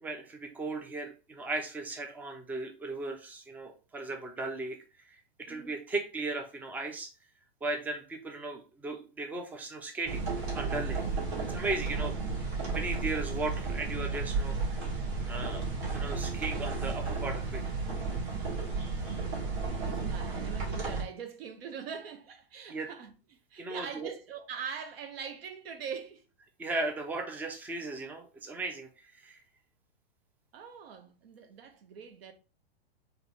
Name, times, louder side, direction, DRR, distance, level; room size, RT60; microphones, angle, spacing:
voice 1, 0.0-4.8 5.1-7.1 7.6-10.2 10.5-11.0 11.5-12.1 12.7-14.8 15.3-15.6 15.9-17.6 22.7-22.9 23.6-24.1 26.6-29.4, right 2 dB, 5° right, 0.4 m, -36 dB
voice 2, 5.5-5.8 11.9-12.1 19.2-23.1 23.5-26.2 30.5-32.3, right 6 dB, 70° right, 0.9 m, -43 dB
sound 1, 10.1-21.0, right 4 dB, 35° right, 1.8 m, -33 dB
4.0 x 2.7 x 3.1 m
hypercardioid pair, 130°, 31 cm